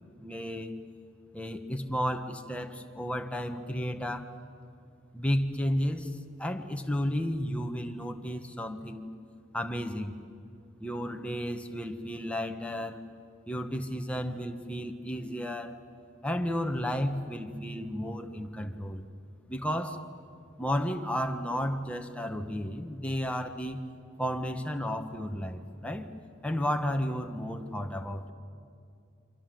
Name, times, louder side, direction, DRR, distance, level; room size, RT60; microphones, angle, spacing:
voice 1, 0.2-0.7 1.3-4.3 5.1-6.1 6.4-9.1 9.5-10.2 10.8-13.0 13.5-15.8 16.2-19.0 19.5-20.1 20.6-23.8 24.2-26.1 26.4-28.3, equal, 5° left, 5 dB, 1.5 m, -32 dB
29.0 x 25.0 x 7.8 m, 2.5 s
head